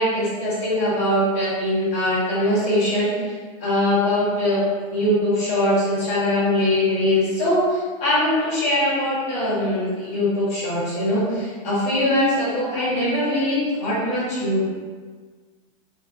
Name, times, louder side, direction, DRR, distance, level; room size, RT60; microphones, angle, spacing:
voice 1, 0.0-3.3 3.6-4.6 4.9-14.7, left 1 dB, 35° left, -10 dB, 1.4 m, -22 dB
2.5 x 2.5 x 2.5 m, 1.5 s
supercardioid pair, 145°, 18 cm